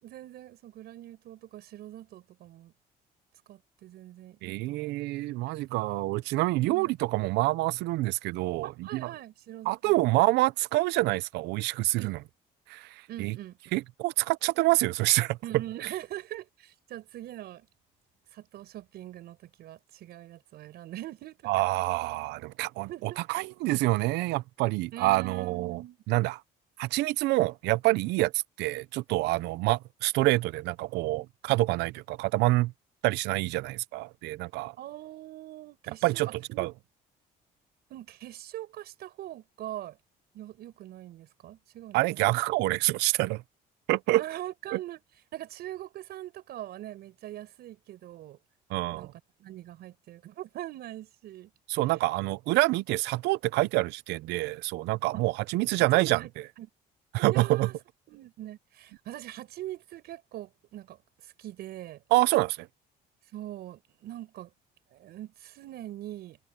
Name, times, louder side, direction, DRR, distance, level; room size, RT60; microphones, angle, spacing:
voice 1, 0.0-2.7 3.5-4.9 6.6-6.9 8.6-10.1 12.0-12.1 13.1-13.6 15.4-17.7 18.3-21.5 22.9-23.2 24.9-26.0 34.8-36.7 37.9-40.0 40.3-42.3 44.1-45.0 45.3-48.4 48.9-49.1 49.4-51.5 55.1-55.2 55.9-56.3 56.6-56.7 57.3-57.7 58.1-61.0 61.2-62.0 63.3-64.5 64.9-66.4, right 13 dB, 70° right, 5.5 m, -42 dB
voice 2, 4.4-9.1 9.7-12.2 12.7-13.3 13.7-15.4 21.5-25.8 26.1-26.4 26.8-28.3 28.6-32.7 33.0-34.7 36.0-36.7 41.9-43.4 43.9-44.2 44.7-44.8 48.7-49.1 51.7-56.2 57.1-57.7 62.1-62.7, right 19 dB, 90° right, 0.6 m, -27 dB
cardioid pair, 110°, 17 cm